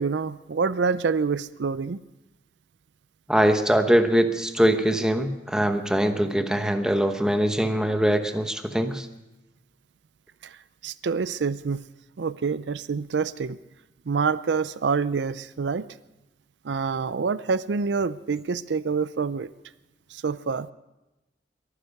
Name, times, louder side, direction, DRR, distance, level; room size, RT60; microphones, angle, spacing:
voice 1, 0.0-2.0 10.8-11.8 12.2-13.6 14.1-15.9 16.6-19.5 20.1-20.7, right 5 dB, 75° right, 16 dB, 0.5 m, -26 dB
voice 2, 3.3-9.1, equal, 5° right, 7 dB, 1.0 m, -22 dB
22.5 x 9.8 x 6.6 m, 1.0 s
head